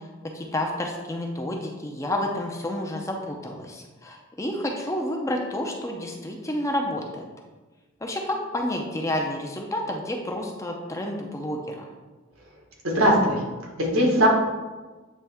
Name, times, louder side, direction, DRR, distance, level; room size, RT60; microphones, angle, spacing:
voice 1, 0.3-7.2 8.0-11.9, left 1 dB, 15° left, 1 dB, 0.6 m, -30 dB
voice 2, 12.8-13.4 13.8-14.3, equal, 85° right, -2 dB, 1.7 m, -19 dB
8.5 x 3.3 x 3.5 m, 1.3 s
head